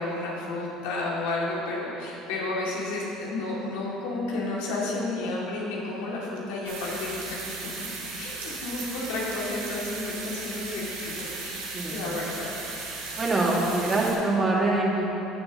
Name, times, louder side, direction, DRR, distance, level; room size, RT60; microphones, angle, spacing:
voice 1, 0.0-7.4 8.2-12.5, left 2 dB, 75° left, -4 dB, 2.5 m, -32 dB
sound 1, 6.7-14.1, right 3 dB, 90° right, 2.1 m, -36 dB
voice 2, 13.2-15.0, right 2 dB, 25° right, -4 dB, 2.5 m, -24 dB
17.0 x 7.5 x 3.1 m, 2.9 s
hypercardioid pair, 75°, 0 cm